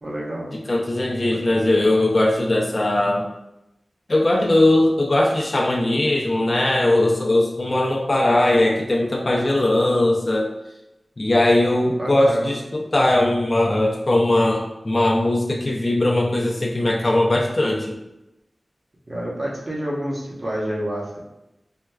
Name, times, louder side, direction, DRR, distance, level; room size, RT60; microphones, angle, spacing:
voice 1, 0.0-0.5 1.4-1.6 12.0-12.6 19.1-21.2, right 1 dB, 50° right, -5 dB, 0.9 m, -28 dB
voice 2, 0.7-3.3 4.1-10.5 11.2-18.0, left 1 dB, 45° left, -1 dB, 0.4 m, -19 dB
4.2 x 2.2 x 2.2 m, 0.93 s
wide cardioid pair, 75°, 0 cm